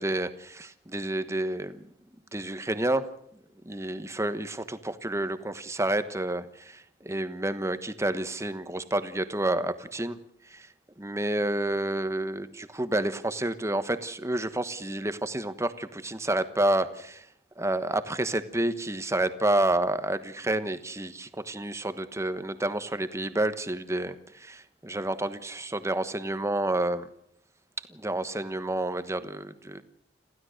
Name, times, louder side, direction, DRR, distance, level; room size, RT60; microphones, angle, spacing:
voice 1, 0.0-1.8 2.3-3.0 3.6-10.2 10.5-10.7 11.0-17.3 17.6-27.1 27.9-29.8, right 1 dB, 15° right, 11 dB, 1.2 m, -29 dB
26.5 x 15.5 x 6.6 m, 0.70 s
head